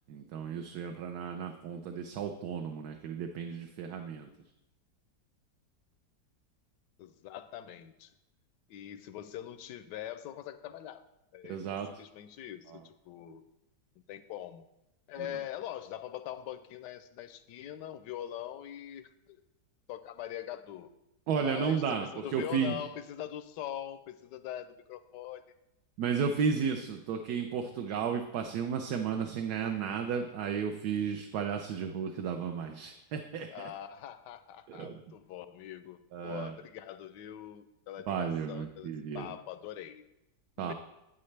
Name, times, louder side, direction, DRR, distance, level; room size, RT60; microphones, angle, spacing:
voice 1, 0.1-4.3 11.4-11.9 12.7-12.8 15.2-15.3 21.3-22.8 26.0-33.7 34.7-35.0 36.1-36.5 38.1-39.3 40.6-40.7, right 6 dB, 75° right, 5 dB, 1.2 m, -33 dB
voice 2, 7.0-8.1 8.7-11.0 11.3-11.6 12.0-13.4 14.1-14.6 15.1-19.4 19.9-20.9 21.4-25.4 33.5-40.0 40.6-40.7, left 11 dB, 90° left, 12 dB, 1.2 m, -43 dB
9.6 x 8.7 x 3.3 m, 0.91 s
omnidirectional pair, 1.8 m